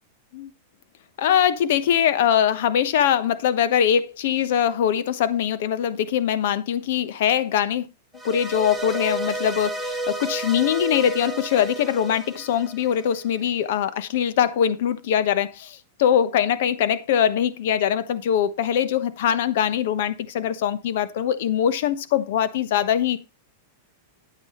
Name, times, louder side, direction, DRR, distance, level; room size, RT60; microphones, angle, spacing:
voice 1, 1.2-7.9 8.2-23.2, left 9 dB, 65° left, 1.0 m, -22 dB
sound 1, 8.1-13.4, right 2 dB, ahead, 1.5 m, -32 dB
10.5 x 8.9 x 3.1 m
hypercardioid pair, 130°, 0 cm